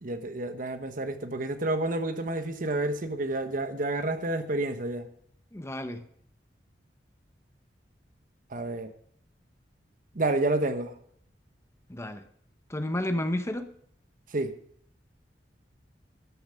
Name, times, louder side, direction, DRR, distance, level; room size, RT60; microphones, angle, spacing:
voice 1, 0.0-5.1 8.5-8.9 10.1-10.9 14.3-14.5, right 2 dB, 50° right, 1.0 m, -29 dB
voice 2, 5.5-6.0 11.9-12.2 12.7-13.7, left 1 dB, 15° left, 0.8 m, -31 dB
13.5 x 7.2 x 6.3 m
head